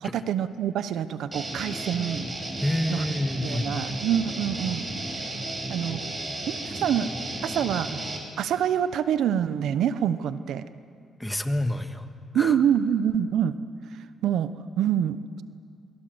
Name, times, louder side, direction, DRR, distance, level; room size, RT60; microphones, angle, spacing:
voice 1, 0.0-2.2 2.9-3.0 3.4-4.9 5.7-6.0 6.5-7.1 7.4-8.0 8.4-10.6 12.3-13.5 14.2-14.5 14.8-15.4, right 9 dB, 75° right, 13 dB, 0.9 m, -26 dB
Guitar, 1.3-8.2, right 2 dB, 25° right, 5.3 m, -33 dB
voice 2, 2.6-3.8 11.2-12.0 12.3-12.6, left 1 dB, 5° left, 7 dB, 1.7 m, -28 dB
28.0 x 22.0 x 7.9 m, 2.2 s
cardioid pair, 90°, 0 cm